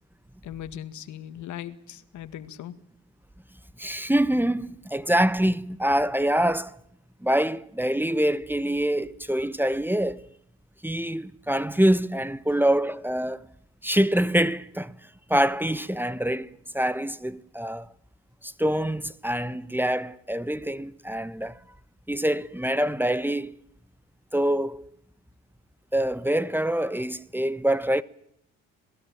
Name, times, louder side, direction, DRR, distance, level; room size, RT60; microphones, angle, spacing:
voice 1, 0.4-2.8, left 11 dB, 70° left, 1.8 m, -39 dB
voice 2, 3.8-6.8 7.2-10.3 10.8-13.5 13.8-14.9 15.3-17.9 18.4-21.6 22.1-23.5 24.3-24.9 25.9-28.0, right 1 dB, 5° right, 1.2 m, -25 dB
27.5 x 20.0 x 7.3 m
supercardioid pair, 65°, 30 cm